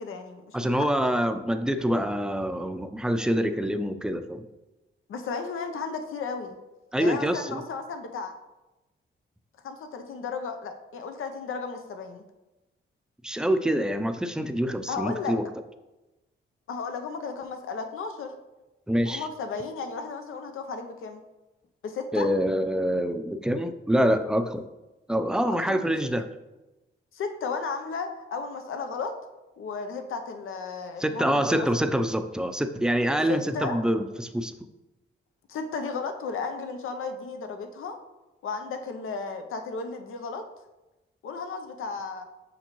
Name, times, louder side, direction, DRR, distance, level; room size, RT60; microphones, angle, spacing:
voice 1, 0.0-0.9 5.1-6.6 7.0-8.3 9.6-12.2 14.9-15.4 16.7-18.4 19.0-21.2 21.8-22.3 25.7-25.9 27.1-29.1 29.6-31.9 33.3-33.8 35.5-38.0 38.4-40.4 41.2-42.2, left 4 dB, 80° left, 6 dB, 0.7 m, -34 dB
voice 2, 0.5-4.5 6.9-7.6 13.2-15.5 18.9-19.3 22.1-24.7 25.1-26.3 31.0-34.5, equal, 5° right, 8 dB, 0.5 m, -26 dB
6.9 x 5.1 x 3.1 m, 1.0 s
cardioid pair, 70°, 21 cm